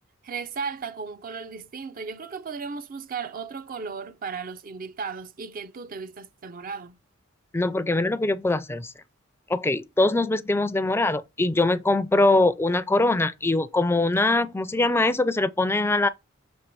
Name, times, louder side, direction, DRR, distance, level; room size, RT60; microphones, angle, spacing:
voice 1, 0.2-7.0, right 5 dB, 45° right, 0.5 m, -35 dB
voice 2, 7.5-8.9 9.5-16.1, left 2 dB, 10° left, 0.4 m, -22 dB
6.4 x 3.3 x 4.5 m
head